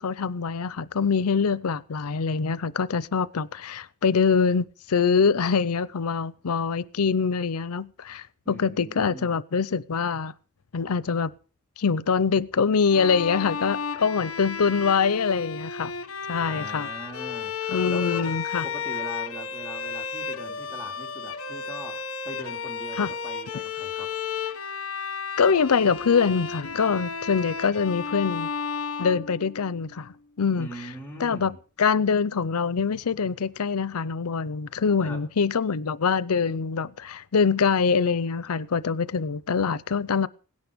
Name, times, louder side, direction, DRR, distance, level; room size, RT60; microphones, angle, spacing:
voice 1, 0.0-10.3 10.7-11.3 11.8-15.9 16.3-16.9 17.7-18.6 23.0-23.1 25.4-28.5 29.0-30.7 31.2-31.5 31.8-40.3, left 5 dB, 85° left, 0.6 m, -24 dB
voice 2, 8.4-9.3 16.5-18.4 18.6-24.2 30.6-31.6 35.0-35.2, right 1 dB, 10° left, 3.0 m, -41 dB
Bowed string instrument, 12.9-29.9, left 6 dB, 65° left, 1.1 m, -33 dB
17.5 x 10.5 x 5.1 m
head